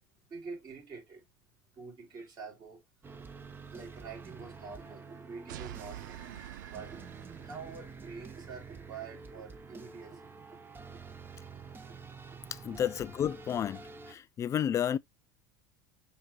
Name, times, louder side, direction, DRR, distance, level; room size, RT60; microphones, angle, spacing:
voice 1, 0.3-1.2 1.7-2.8 3.7-11.2 11.9-12.8, right 4 dB, 40° right, 3.7 m, -47 dB
sound 1, 3.0-14.1, right 5 dB, 20° right, 0.7 m, -49 dB
sound 2, 5.5-8.1, right 14 dB, 75° right, 0.4 m, -46 dB
voice 2, 12.5-15.0, left 9 dB, 30° left, 0.3 m, -32 dB
5.9 x 2.6 x 2.9 m
hypercardioid pair, 85°, 10 cm